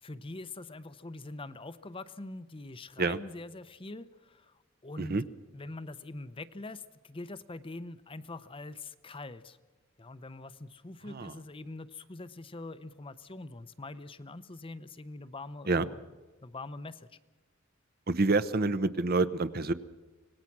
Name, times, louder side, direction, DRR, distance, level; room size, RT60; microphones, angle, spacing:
voice 1, 0.0-5.2 5.5-9.6 10.0-16.0 16.4-17.1, left 2 dB, 25° left, 13 dB, 0.7 m, -44 dB
voice 2, 18.1-19.7, right 3 dB, 50° right, 14 dB, 0.8 m, -27 dB
25.5 x 19.0 x 6.1 m, 1.2 s
head